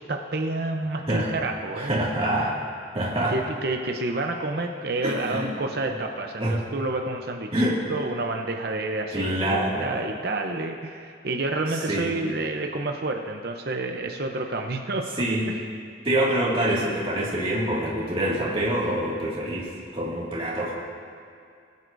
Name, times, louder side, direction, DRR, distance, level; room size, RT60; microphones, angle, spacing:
voice 1, 0.0-1.9 3.3-15.1, right 2 dB, 55° right, 3 dB, 0.7 m, -29 dB
voice 2, 1.8-2.6 2.9-3.3 5.0-5.5 6.4-6.6 7.5-7.9 9.1-10.0 11.9-12.1 15.2-15.6 16.0-20.7, right 1 dB, 30° right, -7 dB, 2.0 m, -25 dB
21.5 x 9.5 x 2.6 m, 2.3 s
head